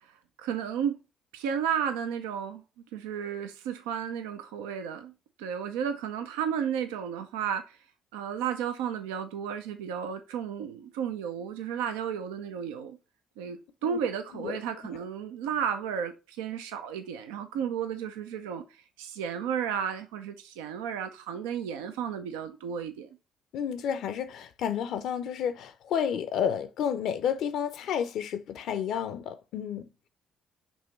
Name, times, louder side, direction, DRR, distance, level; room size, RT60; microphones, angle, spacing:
voice 1, 0.4-1.0 1.3-2.6 2.9-5.1 5.4-7.8 8.1-13.0 13.4-18.6 19.0-23.1, right 8 dB, 85° right, 0.5 m, -33 dB
voice 2, 23.5-30.1, left 8 dB, 70° left, 0.5 m, -31 dB
5.4 x 3.0 x 3.0 m
hypercardioid pair, 55°, 0 cm